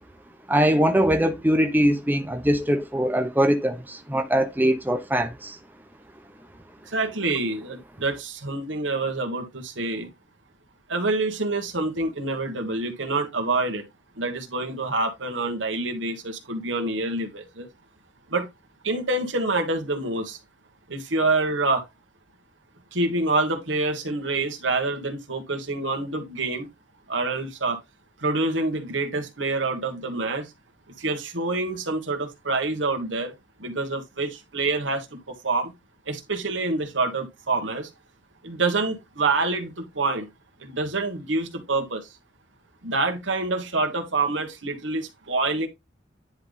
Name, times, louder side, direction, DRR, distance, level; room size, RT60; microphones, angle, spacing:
voice 1, 0.5-5.6, equal, 10° right, 0.9 m, -22 dB
voice 2, 6.9-10.1 10.9-13.8 14.2-17.7 18.3-18.5 18.8-20.4 20.9-21.8 22.9-26.7 27.1-27.8 28.2-30.5 31.0-33.3 33.6-35.7 36.1-37.9 38.4-40.3 40.6-42.1 42.8-45.7, right 3 dB, 90° right, 1.8 m, -26 dB
10.0 x 3.4 x 4.0 m
head